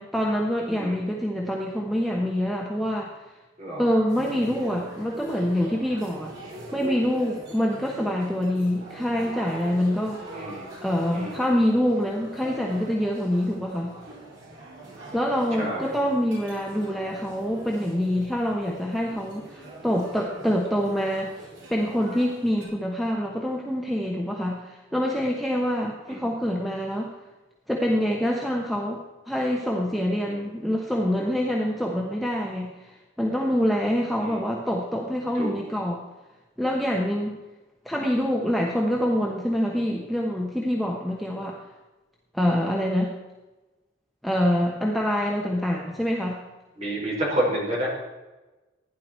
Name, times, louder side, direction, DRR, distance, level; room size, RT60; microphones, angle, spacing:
voice 1, 0.0-3.1 3.8-6.3 6.7-10.4 10.8-13.9 15.1-21.3 21.7-27.1 27.7-29.0 29.3-36.0 36.6-37.4 37.8-41.6 42.3-43.1 44.2-46.4, equal, ahead, -2 dB, 1.1 m, -25 dB
sound 1, 4.1-22.7, right 1 dB, 70° right, 5.4 m, -42 dB
voice 2, 10.3-10.6 11.1-11.4 15.6-15.9 26.1-26.2 30.3-30.4 34.2-34.4 35.3-35.6 46.8-47.9, right 1 dB, 35° right, -4 dB, 5.1 m, -29 dB
15.5 x 10.5 x 4.5 m, 1.1 s
head